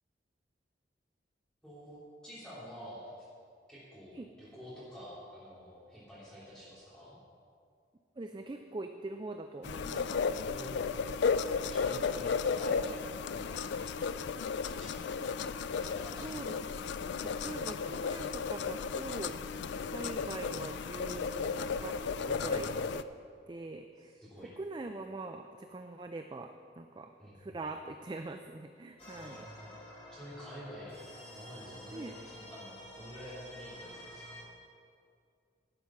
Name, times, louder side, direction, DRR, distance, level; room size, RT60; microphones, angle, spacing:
voice 1, 1.6-3.0 3.7-7.2 10.4-10.9 11.7-13.7 14.6-15.1 15.8-16.3 22.3-22.7 24.1-24.5 27.2-27.6 29.1-29.7 30.1-31.0 31.3-34.3, equal, 5° left, -11 dB, 3.1 m, -49 dB
voice 2, 8.2-10.1 12.3-12.4 16.2-19.6 19.8-23.1 23.5-24.2 24.6-29.5 31.9-32.2, right 2 dB, 25° right, 6 dB, 0.3 m, -43 dB
sound 1, 9.6-23.0, left 5 dB, 70° left, 0.4 m, -34 dB
sound 2, 29.0-34.4, left 1 dB, 30° left, 2.1 m, -50 dB
11.5 x 7.9 x 5.7 m, 2.3 s
head